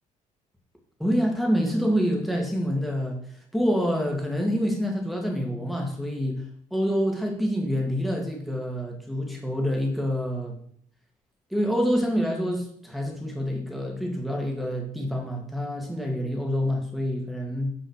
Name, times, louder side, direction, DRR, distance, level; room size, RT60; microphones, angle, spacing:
voice 1, 1.0-3.2 3.5-6.4 6.7-10.6 11.5-17.7, equal, ahead, 1 dB, 1.9 m, -27 dB
5.7 x 5.4 x 6.5 m, 0.62 s
cardioid pair, 125°, 14 cm